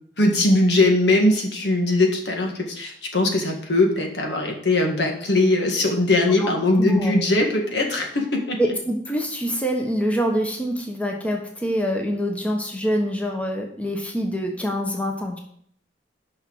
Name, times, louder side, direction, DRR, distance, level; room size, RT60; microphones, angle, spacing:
voice 1, 0.2-8.6, left 2 dB, 70° left, 2 dB, 1.8 m, -20 dB
voice 2, 6.8-7.2 8.6-15.4, equal, 10° left, 1 dB, 1.1 m, -25 dB
6.7 x 5.7 x 6.4 m, 0.63 s
head